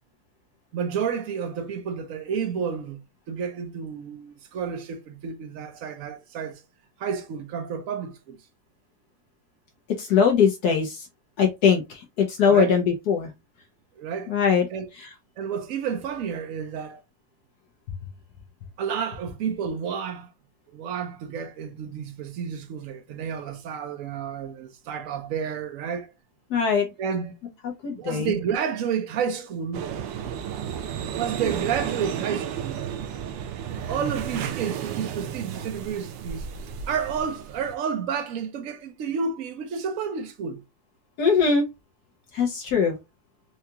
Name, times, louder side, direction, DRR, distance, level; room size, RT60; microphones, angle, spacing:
voice 1, 0.7-6.6 7.0-8.4 12.5-12.8 14.0-14.3 14.7-14.9 15.4-17.0 18.8-20.3 20.7-26.1 27.0-27.4 28.0-29.9 31.1-32.9 33.9-40.6, right 7 dB, 60° right, 0.9 m, -30 dB
voice 2, 10.0-11.0 11.4-13.3 14.3-14.7 26.5-26.9 27.6-28.3 41.2-41.6 42.3-43.0, left 6 dB, 65° left, 1.2 m, -21 dB
sound 1, 29.7-37.7, right 8 dB, 90° right, 1.3 m, -33 dB
4.6 x 2.4 x 2.8 m
omnidirectional pair, 1.9 m